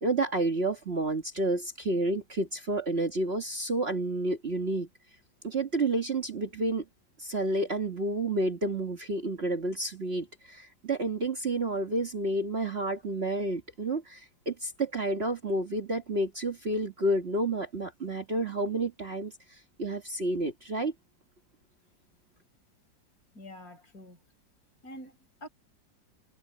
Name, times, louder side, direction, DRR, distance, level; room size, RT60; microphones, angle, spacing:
voice 1, 0.0-4.9 5.4-6.8 7.2-19.3 19.8-20.9, right 2 dB, 35° right, 1.8 m, -30 dB
voice 2, 23.3-24.2 24.8-25.5, equal, 50° left, 5.3 m, -46 dB
omnidirectional pair, 2.0 m